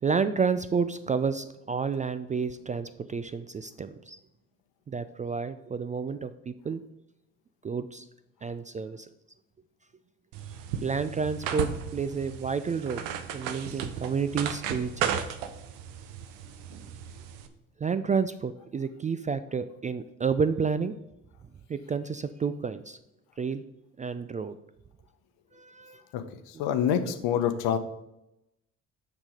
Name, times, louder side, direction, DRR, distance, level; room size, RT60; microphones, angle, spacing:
voice 1, 0.0-4.2 4.9-6.8 7.6-8.0 8.4-9.1 10.8-13.0 13.3-15.2 17.8-20.9 21.7-23.0 23.4-23.6 24.0-24.6 25.5-26.0, right 5 dB, 20° right, 12 dB, 0.3 m, -30 dB
sound 1, 10.3-17.5, right 8 dB, 75° right, 0.8 m, -35 dB
voice 2, 26.1-27.8, left 9 dB, 65° left, 10 dB, 0.9 m, -27 dB
6.0 x 5.9 x 5.0 m, 0.88 s
hypercardioid pair, 50°, 41 cm